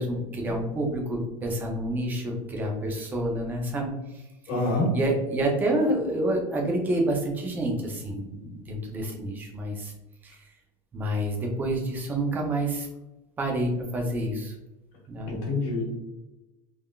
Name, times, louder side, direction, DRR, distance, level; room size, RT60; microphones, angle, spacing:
voice 1, 0.0-3.9 4.9-9.9 10.2-10.4 10.9-12.9 13.4-14.5 15.1-15.4, right 1 dB, 10° right, 1 dB, 0.3 m, -28 dB
voice 2, 4.5-4.9 15.3-15.9, left 2 dB, 65° left, -2 dB, 1.4 m, -26 dB
3.6 x 2.3 x 2.2 m, 0.97 s
supercardioid pair, 170°, 18 cm